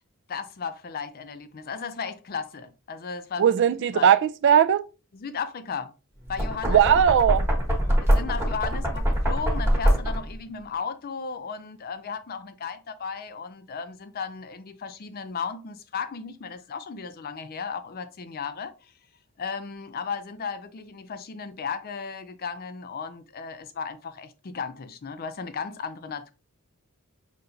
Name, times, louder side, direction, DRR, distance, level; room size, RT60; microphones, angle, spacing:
voice 1, 0.3-3.6 3.9-4.1 5.1-5.9 6.3-7.0 7.7-18.9 19.4-26.3, left 5 dB, 45° left, 0.5 m, -35 dB
voice 2, 3.4-4.8 6.7-7.5, right 8 dB, 55° right, 0.3 m, -19 dB
Knock, 6.2-10.4, equal, 10° right, 1.0 m, -24 dB
5.6 x 2.9 x 2.6 m
head